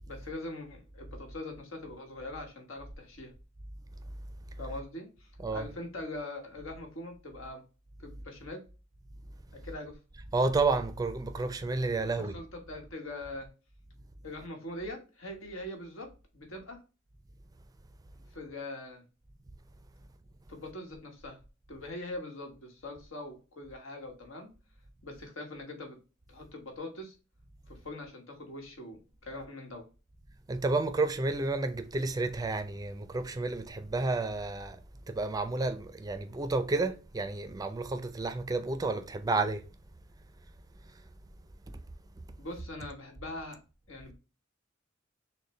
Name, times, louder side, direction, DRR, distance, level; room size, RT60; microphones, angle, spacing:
voice 1, 0.1-3.3 4.6-7.6 8.0-8.6 9.5-10.0 12.2-13.5 14.2-16.1 16.3-16.8 18.3-19.0 20.5-21.4 21.7-24.5 25.0-26.0 26.3-27.1 27.7-29.9 42.4-43.6 43.9-44.2, left 1 dB, 85° left, 1.3 m, -42 dB
voice 2, 10.3-12.4 30.5-34.8 35.1-39.6 40.9-41.0 41.7-41.8, right 3 dB, 20° right, 0.4 m, -31 dB
6.4 x 2.2 x 3.2 m
head